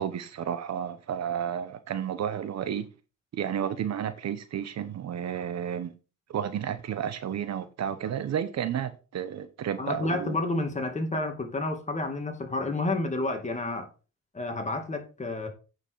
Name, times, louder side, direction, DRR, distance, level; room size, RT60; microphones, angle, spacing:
voice 1, 0.0-2.9 3.3-5.9 6.3-10.4, right 9 dB, 60° right, 1.1 m, -32 dB
voice 2, 9.8-13.9 14.3-15.5, left 2 dB, 25° left, 2.6 m, -30 dB
8.6 x 6.4 x 4.8 m
cardioid pair, 90°, 30 cm